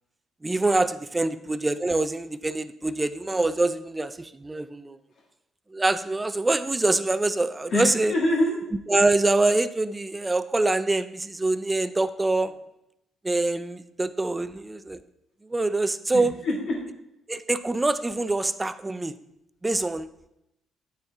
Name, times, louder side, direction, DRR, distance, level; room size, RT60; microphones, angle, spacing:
voice 1, 0.4-5.0 5.7-8.1 8.9-12.5 13.2-15.0 15.4-16.3 17.3-19.1 19.6-20.1, right 2 dB, 20° right, 13 dB, 0.4 m, -25 dB
voice 2, 7.7-8.6 16.1-16.9, left 1 dB, 60° left, -2 dB, 2.0 m, -25 dB
8.7 x 4.5 x 3.5 m, 0.85 s
cardioid pair, 90°, 0 cm